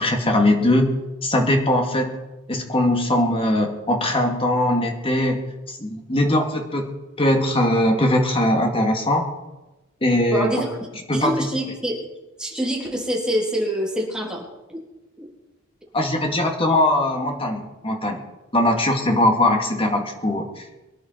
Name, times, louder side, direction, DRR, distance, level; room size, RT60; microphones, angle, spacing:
voice 1, 0.0-2.2 2.5-5.4 5.8-6.9 7.2-9.3 10.0-10.5 11.1-11.5 15.9-18.2 18.5-20.6, left 1 dB, 25° left, 3 dB, 2.2 m, -20 dB
voice 2, 10.3-10.8 11.1-12.0 12.4-14.8 15.2-15.3, equal, 5° right, -2 dB, 3.5 m, -25 dB
23.5 x 11.0 x 4.6 m, 1.1 s
head